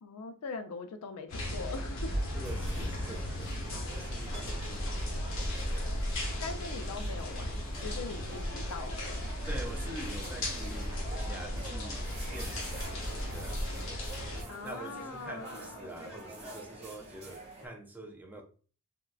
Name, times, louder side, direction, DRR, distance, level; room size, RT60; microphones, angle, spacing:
voice 1, 0.0-2.2 6.4-9.3 14.5-15.9, left 4 dB, 85° left, 0.4 m, -42 dB
sound 1, 1.3-14.4, left 1 dB, 60° left, 0.8 m, -35 dB
sound 2, 2.1-17.7, right 2 dB, 25° right, 0.9 m, -48 dB
voice 2, 2.3-5.2 9.5-13.7 14.6-18.4, right 1 dB, 10° right, 0.4 m, -46 dB
3.5 x 2.2 x 2.3 m
head